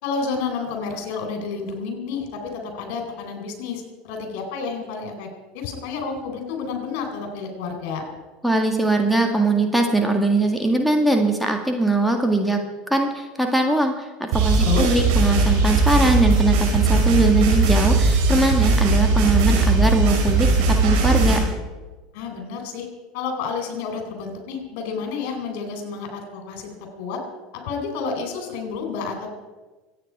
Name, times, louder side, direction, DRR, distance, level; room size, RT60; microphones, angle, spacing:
voice 1, 0.0-5.3 5.5-8.0 14.6-14.8 22.1-22.9 23.1-27.2 27.5-29.3, left 5 dB, 60° left, 4 dB, 4.1 m, -30 dB
voice 2, 8.4-12.6 12.9-21.4, right 2 dB, ahead, 3 dB, 1.9 m, -21 dB
sound 1, 14.3-21.4, right 3 dB, 65° right, 5.1 m, -18 dB
25.0 x 9.3 x 4.8 m, 1.3 s
hypercardioid pair, 75°, 0 cm